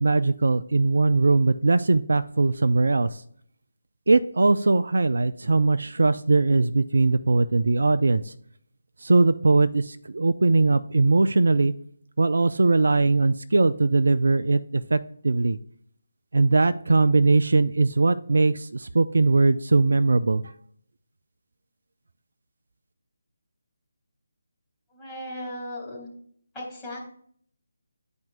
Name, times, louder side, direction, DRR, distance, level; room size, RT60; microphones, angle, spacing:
voice 1, 0.0-3.2 4.1-8.3 9.0-11.7 12.2-15.6 16.3-20.5, right 3 dB, 65° right, 10 dB, 0.3 m, -20 dB
voice 2, 24.9-26.1 26.5-27.0, left 1 dB, 10° left, -6 dB, 2.4 m, -36 dB
11.5 x 4.4 x 2.5 m, 0.62 s
figure-of-eight pair, 150°, 0 cm